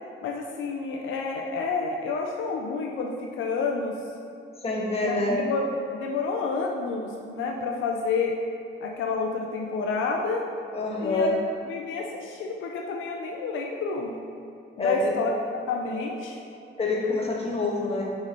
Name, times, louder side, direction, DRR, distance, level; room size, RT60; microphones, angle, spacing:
voice 1, 0.2-3.9 5.0-5.7 6.0-8.4 8.8-10.4 11.0-11.3 11.7-14.2 14.8-15.3 15.7-16.4, left 4 dB, 80° left, 1 dB, 0.6 m, -29 dB
voice 2, 4.6-5.4 10.7-11.3 14.8-15.1 16.8-18.1, left 2 dB, 30° left, -3 dB, 1.5 m, -26 dB
5.5 x 5.4 x 4.4 m, 2.7 s
cardioid pair, 90°, 20 cm